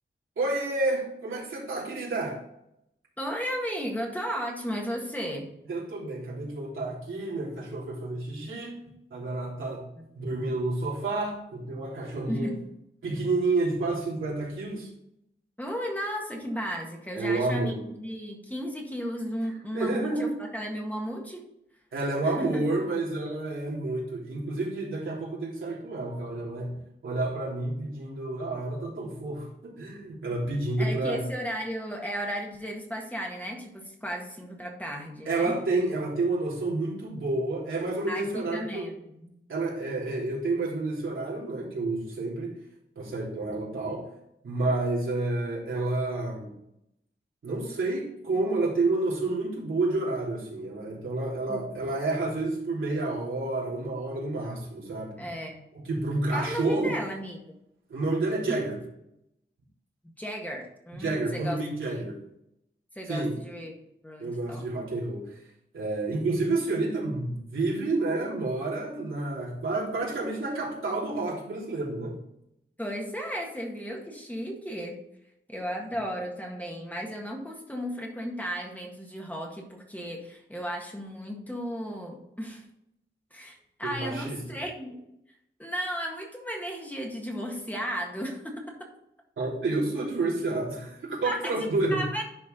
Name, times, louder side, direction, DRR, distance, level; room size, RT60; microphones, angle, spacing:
voice 1, 0.4-2.4 5.7-8.8 9.1-9.8 10.1-12.5 13.0-14.9 17.1-17.8 19.7-20.3 21.9-26.8 27.0-31.2 35.2-38.9 39.5-42.5 42.9-44.0 44.4-46.6 47.4-55.3 55.7-57.0 57.9-58.8 61.0-62.2 63.1-63.4 64.2-65.2 65.7-72.2 83.8-84.4 89.4-92.0, right 2 dB, 90° right, -6 dB, 3.3 m, -29 dB
voice 2, 3.2-5.5 10.0-10.1 12.3-12.6 15.6-21.4 22.2-22.6 30.8-35.6 38.1-39.3 51.5-51.6 55.2-55.6 56.3-57.6 58.5-58.6 60.2-61.6 62.0-62.1 63.0-63.7 64.0-64.8 72.8-75.0 75.5-82.7 83.3-85.0 85.6-88.9 91.2-92.2, equal, 10° left, 0 dB, 1.7 m, -34 dB
11.0 x 4.9 x 3.9 m, 0.80 s
wide cardioid pair, 120°, 20 cm